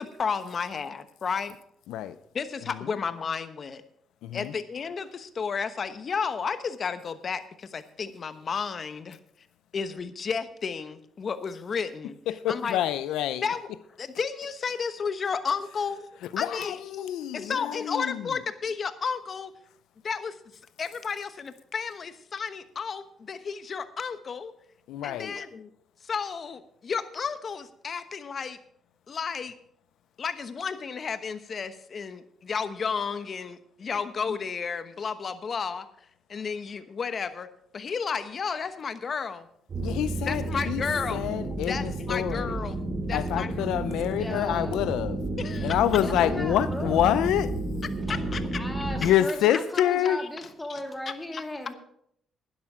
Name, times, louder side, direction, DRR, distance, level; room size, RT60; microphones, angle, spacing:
voice 1, 0.0-1.5 2.3-3.8 4.3-9.2 9.7-12.1 12.5-12.8 13.4-13.6 14.0-16.1 16.4-19.5 20.0-20.4 20.8-24.5 25.0-25.7 26.0-28.6 29.1-29.5 30.2-35.9 36.3-37.5 37.7-39.5 40.3-41.2 41.7-43.7 45.4-45.7 46.2-46.3 48.3-48.6 50.2-50.3 50.7-50.8 51.3-51.4, left 6 dB, 45° left, 1.1 m, -32 dB
voice 2, 4.2-4.5 12.3-13.5 16.3-18.3 24.9-25.4 39.8-40.8 41.1-42.6 43.1-45.2 45.6-47.5 49.0-50.2, left 11 dB, 90° left, 0.6 m, -27 dB
sound 1, 39.7-49.1, right 2 dB, 45° right, 3.7 m, -31 dB
voice 3, 43.9-45.0 45.8-47.0 48.1-51.7, left 1 dB, 15° left, 2.5 m, -37 dB
12.0 x 10.5 x 5.0 m
cardioid pair, 90°, 0 cm